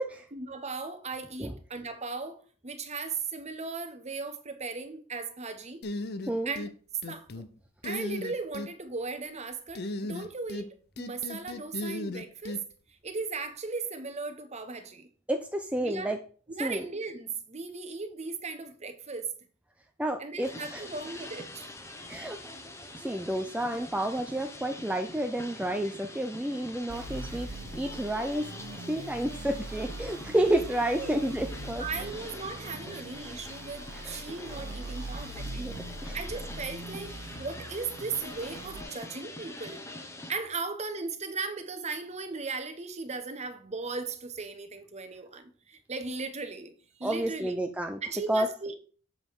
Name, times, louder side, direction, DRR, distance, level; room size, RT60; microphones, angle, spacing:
voice 1, 0.3-5.8 6.4-6.7 7.1-7.4 7.8-12.6 13.0-15.1 15.8-16.2 16.5-19.3 20.2-21.7 30.4-30.5 31.0-31.1 31.8-35.7 36.1-39.9 40.3-46.7 47.0-47.6 48.0-48.8, right 4 dB, 35° right, 1.0 m, -37 dB
sound 1, 5.8-6.7 7.0-7.5 7.8-8.7 9.8-10.7 11.0-12.6, left 2 dB, 50° left, 0.7 m, -36 dB
voice 2, 15.3-16.2 16.6-16.8 20.0-20.8 22.1-22.4 23.0-27.5 27.7-28.5 28.9-31.8 32.9-33.0 34.0-34.2 35.6-35.7 36.0-36.2 47.0-48.0 48.3-48.5, right 1 dB, 5° right, 0.5 m, -30 dB
sound 2, 20.4-40.3, left 1 dB, 15° left, 1.0 m, -44 dB
sound 3, 26.9-38.8, right 2 dB, 90° right, 1.0 m, -42 dB
7.4 x 5.2 x 4.7 m
head